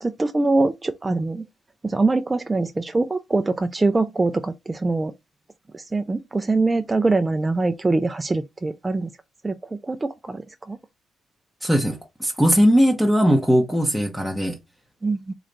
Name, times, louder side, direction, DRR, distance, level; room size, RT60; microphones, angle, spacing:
voice 1, 0.0-1.5 1.8-5.1 5.7-9.1 9.4-10.4 10.7-10.8 15.0-15.3, right 3 dB, 20° right, 0.4 m, -23 dB
voice 2, 11.6-14.6, equal, 5° left, 0.8 m, -19 dB
3.9 x 2.5 x 3.3 m
cardioid pair, 90°, 0 cm